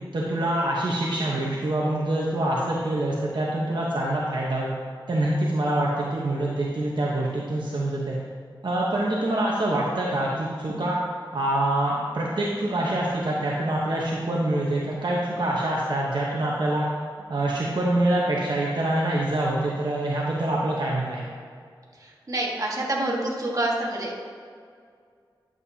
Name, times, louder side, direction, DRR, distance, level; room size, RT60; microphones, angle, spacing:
voice 1, 0.1-4.7 5.1-8.2 8.6-11.0 11.3-16.9 17.3-21.3, right 1 dB, 65° right, -4 dB, 1.1 m, -25 dB
voice 2, 22.3-24.2, right 1 dB, 45° right, -3 dB, 1.7 m, -27 dB
11.0 x 7.4 x 2.8 m, 2.2 s
wide cardioid pair, 55°, 8 cm